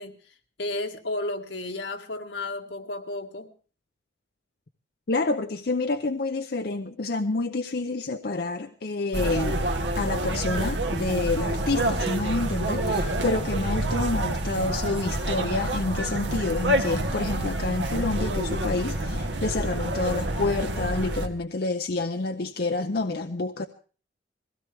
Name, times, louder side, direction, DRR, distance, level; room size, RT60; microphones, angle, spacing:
voice 1, 0.0-3.5, left 2 dB, 80° left, 1.9 m, -33 dB
voice 2, 5.1-9.6 10.0-23.7, left 3 dB, 55° left, 0.7 m, -28 dB
sound 1, 9.1-21.3, right 1 dB, 75° right, 1.6 m, -28 dB
22.0 x 16.0 x 3.5 m
head